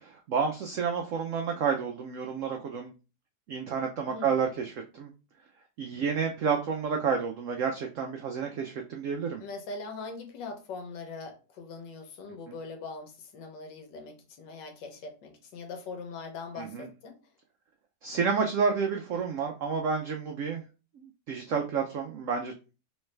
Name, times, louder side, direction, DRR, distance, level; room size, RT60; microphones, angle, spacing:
voice 1, 0.0-2.9 3.5-5.1 5.8-9.4 12.5-12.6 16.6-16.9 18.0-20.6 21.0-22.5, right 6 dB, 85° right, 3 dB, 0.7 m, -30 dB
voice 2, 4.1-4.4 9.4-17.2, left 4 dB, 80° left, 4 dB, 1.5 m, -41 dB
3.3 x 3.1 x 3.2 m, 0.32 s
omnidirectional pair, 1.9 m